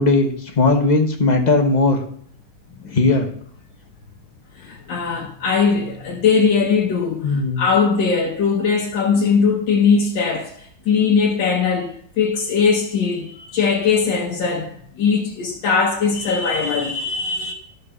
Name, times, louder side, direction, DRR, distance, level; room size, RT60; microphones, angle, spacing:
voice 1, 0.0-2.0 2.9-3.3 7.2-7.6, left 3 dB, 30° left, 1.0 m, -17 dB
voice 2, 4.6-17.5, left 5 dB, 80° left, 1.8 m, -20 dB
11.5 x 5.0 x 6.7 m
omnidirectional pair, 2.0 m